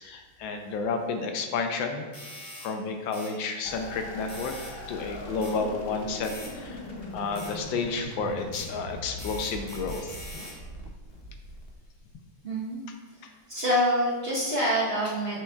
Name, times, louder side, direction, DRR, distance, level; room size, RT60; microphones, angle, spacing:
voice 1, 0.0-2.0 2.6-4.5 4.9-6.8 7.1-10.1, left 4 dB, 75° left, 5 dB, 1.3 m, -31 dB
sound 1, 2.1-2.7 3.1-3.3 4.3-4.7 5.4-5.6 6.2-6.5 7.4-7.5 8.5-8.7 9.2-10.6, left 1 dB, 20° left, 1.1 m, -43 dB
sound 2, 3.6-12.1, left 1 dB, 50° left, 0.7 m, -40 dB
voice 2, 5.3-5.7 12.4-12.8 13.2-15.4, equal, 40° right, -7 dB, 1.0 m, -27 dB
7.7 x 6.1 x 2.3 m, 1.3 s
omnidirectional pair, 2.2 m